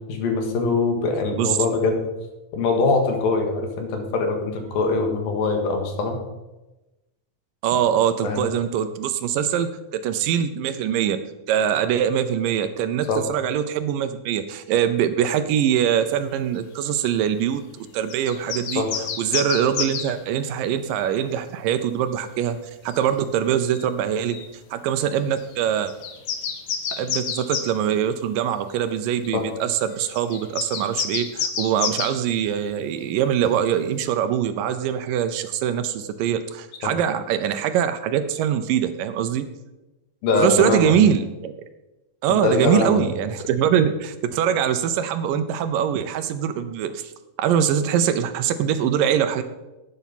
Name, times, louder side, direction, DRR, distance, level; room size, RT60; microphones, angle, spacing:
voice 1, 0.1-2.0 2.5-6.2 8.2-8.4 13.1-13.2 18.8-18.9 29.3-29.4 36.8-36.9 40.2-40.9 42.3-43.0, left 3 dB, 75° left, 4 dB, 3.5 m, -22 dB
voice 2, 7.6-11.2 11.5-17.6 17.9-18.8 19.2-22.6 22.8-24.4 24.7-25.9 26.9-39.5 40.3-41.5 42.2-47.1 47.4-49.4, right 9 dB, 75° right, 10 dB, 2.2 m, -23 dB
sound 1, 18.1-20.1 22.9-23.0 23.7-23.8 24.3-24.5 25.4-25.5 25.9-27.7 28.8-28.9 30.1-32.2, left 7 dB, 60° left, 2.3 m, -29 dB
11.0 x 9.4 x 5.8 m, 1.0 s
omnidirectional pair, 4.2 m